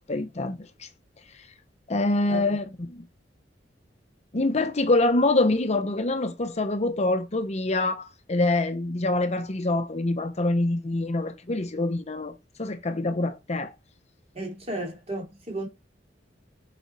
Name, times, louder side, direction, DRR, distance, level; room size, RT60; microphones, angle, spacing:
voice 1, 0.1-0.9 1.4-1.5 1.9-3.0 4.3-12.3 12.6-13.7, left 2 dB, 35° left, 0.7 m, -25 dB
voice 2, 14.3-15.7, right 1 dB, 35° right, 2.8 m, -33 dB
7.0 x 5.0 x 4.5 m
head